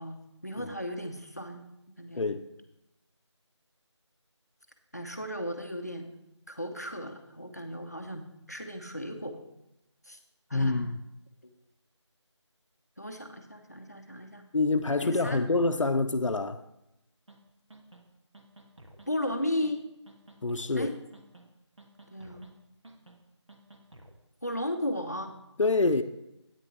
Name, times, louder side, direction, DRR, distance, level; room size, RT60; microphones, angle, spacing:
voice 1, 0.0-1.6 2.0-2.3 4.9-6.1 6.5-9.4 10.0-10.2 10.5-10.8 13.0-14.5 15.0-15.4 19.1-19.8 20.8-20.9 22.1-22.5 24.4-25.3, left 1 dB, 35° left, 0.6 m, -35 dB
voice 2, 2.1-2.4 10.5-11.0 14.5-16.6 20.4-20.9 25.6-26.0, left 3 dB, 90° left, 0.6 m, -26 dB
sound 1, 17.3-17.4 17.7-18.0 18.3-19.1 19.4-19.7 20.1-20.8 21.1-21.5 21.8-22.5 22.8-23.2 23.5-24.1, right 2 dB, 75° right, 1.3 m, -53 dB
9.4 x 9.0 x 3.0 m
figure-of-eight pair, 180°, 16 cm